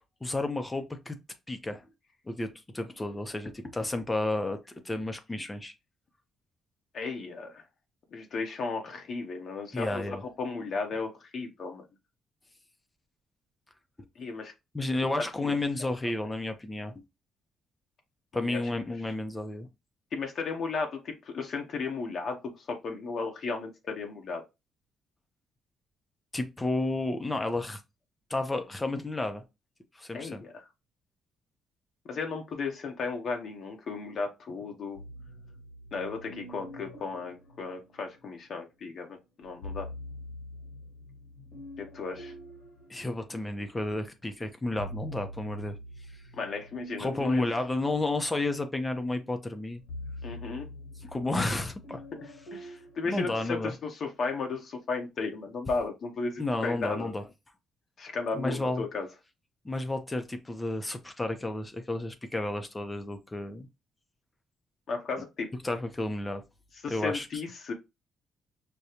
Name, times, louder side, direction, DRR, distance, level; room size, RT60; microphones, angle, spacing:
voice 1, 0.2-1.2 1.5-1.8 2.3-4.6 4.8-5.7 9.7-10.2 14.7-16.9 18.3-19.7 26.3-27.8 28.3-29.4 29.9-30.4 42.9-45.8 47.0-49.8 51.1-52.0 53.0-53.7 56.4-57.2 58.3-58.8 59.6-63.7 65.6-66.4 66.9-67.3, left 2 dB, 20° left, 0.6 m, -31 dB
voice 2, 6.9-7.6 8.1-11.8 14.2-14.5 15.2-15.6 18.3-18.6 20.1-24.4 30.1-30.7 32.1-35.0 35.9-39.9 41.8-42.3 46.4-47.4 50.2-50.7 51.3-51.4 52.5-57.1 58.0-59.1 64.9-65.5 66.8-67.7, left 4 dB, 60° left, 0.8 m, -35 dB
sound 1, 35.0-38.5 39.4-43.9 44.3-53.6, left 1 dB, 80° left, 1.4 m, -45 dB
5.0 x 2.2 x 2.8 m
cardioid pair, 90°, 0 cm